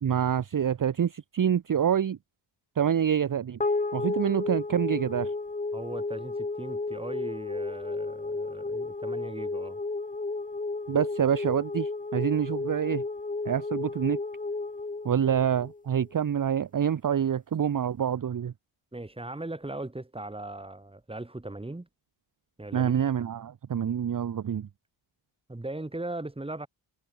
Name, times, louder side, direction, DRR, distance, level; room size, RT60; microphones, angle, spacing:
voice 1, 0.0-2.2 2.8-3.6 3.9-5.3 10.9-13.0 13.4-14.2 15.0-18.5 22.7-24.7, right 8 dB, 40° right, 1.0 m, -26 dB
sound 1, 3.6-16.1, left 3 dB, 15° left, 1.8 m, -33 dB
voice 2, 5.7-9.8 18.9-21.9 22.6-22.9 25.5-26.7, right 2 dB, 10° right, 3.3 m, -38 dB
wide cardioid pair, 120°, 49 cm